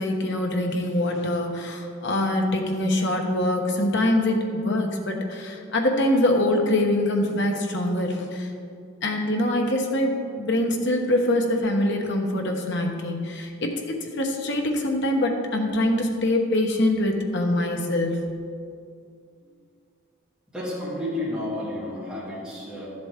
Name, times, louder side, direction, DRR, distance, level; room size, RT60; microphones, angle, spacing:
voice 1, 0.0-8.5 9.0-18.3, left 1 dB, 55° left, 2 dB, 1.1 m, -24 dB
voice 2, 20.5-22.9, left 1 dB, 5° right, -11 dB, 2.7 m, -31 dB
12.5 x 7.8 x 3.6 m, 2.3 s
head